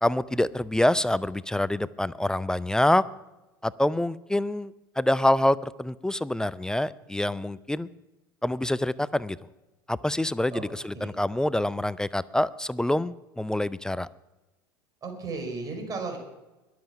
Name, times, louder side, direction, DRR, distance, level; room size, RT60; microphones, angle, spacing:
voice 1, 0.0-3.0 3.6-7.9 8.4-9.4 9.9-14.1, left 1 dB, 5° left, 19 dB, 0.4 m, -26 dB
voice 2, 15.0-16.2, right 3 dB, 30° right, 3 dB, 4.7 m, -34 dB
22.0 x 7.7 x 5.8 m, 1.0 s
figure-of-eight pair, 75°, 12 cm